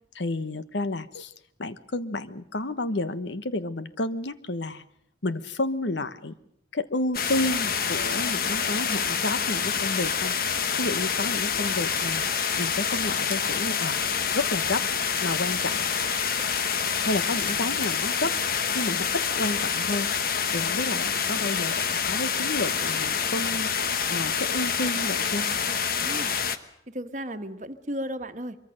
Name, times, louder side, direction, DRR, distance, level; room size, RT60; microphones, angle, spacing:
voice 1, 0.1-1.3 1.6-4.8 5.2-6.4 6.7-10.3 10.8-12.2 12.6-14.0 14.3-14.9 15.2-15.9 17.0-18.4 18.7-20.1 20.5-23.7 24.1-25.5, left 2 dB, 75° left, 12 dB, 1.2 m, -30 dB
sound 1, 7.1-26.6, left 7 dB, 50° left, 1.2 m, -27 dB
sound 2, 10.2-10.3 10.8-10.9 11.3-11.5 11.8-13.4 13.7-13.8 14.3-14.4 14.6-15.3 15.6-15.7 16.1-17.9, left 4 dB, 35° left, 2.9 m, -43 dB
voice 2, 26.0-26.3 26.9-28.6, equal, 40° right, 8 dB, 1.3 m, -34 dB
24.0 x 23.5 x 6.5 m, 0.71 s
head